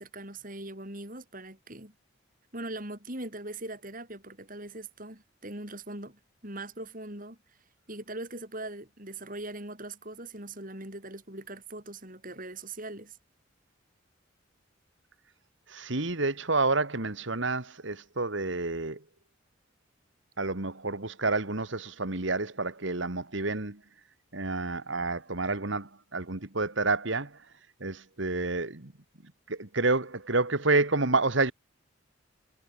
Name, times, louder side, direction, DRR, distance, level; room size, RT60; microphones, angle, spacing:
voice 1, 0.0-1.9 2.5-7.4 7.9-13.2, right 2 dB, 40° right, 7.3 m, -41 dB
voice 2, 15.7-19.0 20.4-23.8 24.3-27.4 27.8-28.9 29.5-31.5, right 3 dB, 65° right, 2.0 m, -29 dB
head